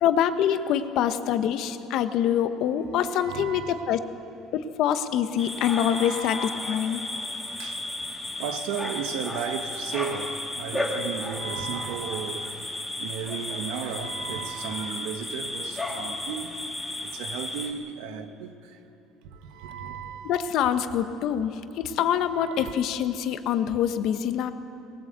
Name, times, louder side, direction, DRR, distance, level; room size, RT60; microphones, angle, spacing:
voice 1, 0.0-4.0 4.5-7.0 20.2-24.5, left 9 dB, 55° left, 1.0 m, -25 dB
voice 2, 3.2-3.9 5.8-6.3 7.6-7.8 8.4-16.6 17.0-18.8 19.2-20.4 22.3-22.8, right 7 dB, 90° right, 1.4 m, -35 dB
sound 1, 5.4-17.7, left 1 dB, 5° left, 2.0 m, -33 dB
20.5 x 18.5 x 8.2 m
cardioid pair, 165°, 0 cm